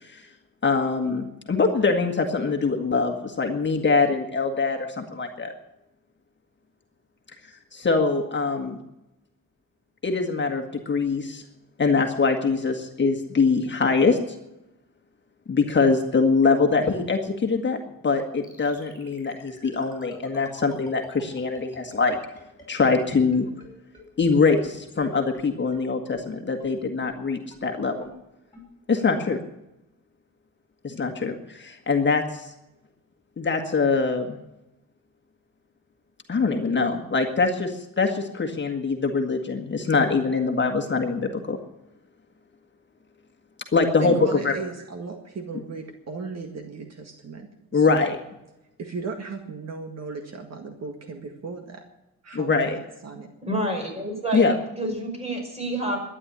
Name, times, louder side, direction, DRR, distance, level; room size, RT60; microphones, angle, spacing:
voice 1, 0.6-5.5 7.7-8.8 10.0-11.4 11.8-14.2 15.5-17.8 18.0-22.2 22.7-23.5 24.2-28.1 28.9-29.4 30.8-32.5 33.4-34.4 36.3-41.6 43.7-44.5 47.7-48.2 52.3-52.8 54.3-54.6, left 4 dB, 35° left, 3 dB, 1.6 m, -23 dB
sound 1, 18.4-23.7 23.9-24.0 24.3-24.4 24.6-24.7 25.0-25.1 25.3-25.4 25.7-25.8 26.1-26.2 26.6-26.7 27.1-27.2 27.5-27.6 28.0-28.1 28.5-28.6, left 2 dB, 10° left, 6.3 m, -48 dB
voice 2, 44.0-48.1 48.8-51.8 52.2-53.3, right 4 dB, 50° right, 4 dB, 1.9 m, -36 dB
voice 3, 53.4-56.0, right 1 dB, 20° right, 2 dB, 5.5 m, -28 dB
12.5 x 10.0 x 9.8 m, 0.92 s
cardioid pair, 120°, 33 cm